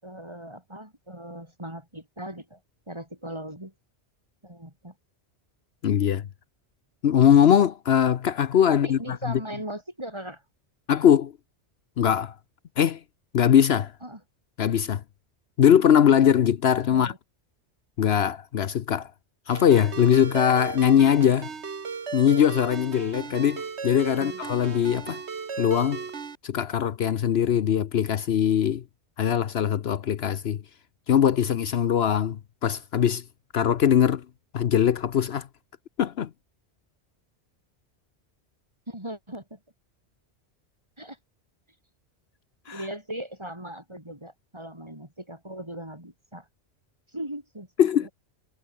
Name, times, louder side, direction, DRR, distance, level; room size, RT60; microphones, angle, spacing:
voice 1, 0.0-2.6 2.9-3.7 4.4-5.0 8.7-10.4 14.0-14.2 16.9-17.2 24.1-24.4 38.9-39.6 41.0-41.2 42.7-46.5 47.1-48.1, right 1 dB, 25° right, 6.0 m, -39 dB
voice 2, 5.8-6.3 7.0-9.0 10.9-11.3 12.0-12.3 12.8-13.0 13.3-13.9 14.6-15.0 15.6-17.1 18.0-19.1 19.5-21.5 22.1-25.2 25.6-26.0 26.4-28.8 29.2-30.6 31.1-33.2 33.5-34.2 34.5-35.5 36.0-36.3 42.7-42.8 47.8-48.1, left 9 dB, 70° left, 1.0 m, -21 dB
Ringtone, 19.5-26.4, right 5 dB, 75° right, 1.8 m, -36 dB
omnidirectional pair, 1.1 m